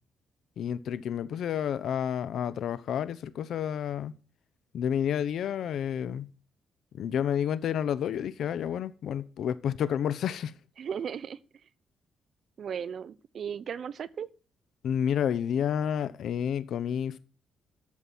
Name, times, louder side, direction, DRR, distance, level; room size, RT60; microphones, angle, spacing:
voice 1, 0.6-4.1 4.7-6.3 6.9-10.5 14.8-17.2, left 9 dB, 70° left, 1.0 m, -30 dB
voice 2, 10.8-11.4 12.6-14.3, right 7 dB, 55° right, 0.8 m, -36 dB
12.0 x 7.5 x 6.2 m
cardioid pair, 105°, 0 cm